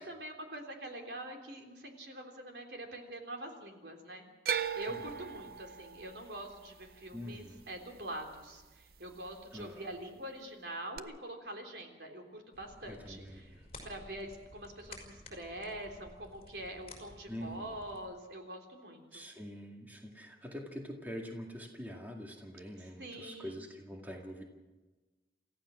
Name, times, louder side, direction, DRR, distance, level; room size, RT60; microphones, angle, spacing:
voice 1, 0.0-4.3 4.7-13.5 13.8-19.2 23.0-23.6, right 1 dB, 70° right, 2 dB, 3.4 m, -45 dB
sound 1, 4.4-8.6 8.9-9.6 11.0-11.1, right 7 dB, 55° right, 0.7 m, -39 dB
voice 2, 4.8-5.3 7.1-7.6 9.5-9.9 12.9-13.7 17.3-17.8 19.1-24.4, equal, 10° right, 1 dB, 2.1 m, -45 dB
sound 2, 12.5-18.0, left 2 dB, 35° left, 5.2 m, -54 dB
28.5 x 15.0 x 6.3 m, 1.2 s
head